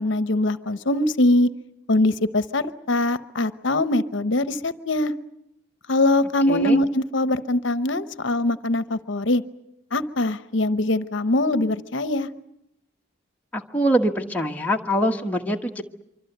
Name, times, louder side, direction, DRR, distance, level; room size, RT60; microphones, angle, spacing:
voice 1, 0.0-1.5 1.9-5.1 5.9-9.4 9.9-12.3, left 1 dB, 65° left, 13 dB, 0.9 m, -22 dB
voice 2, 6.5-6.8 13.5-15.8, equal, 10° left, 1 dB, 1.3 m, -24 dB
25.0 x 25.0 x 8.0 m, 0.84 s
head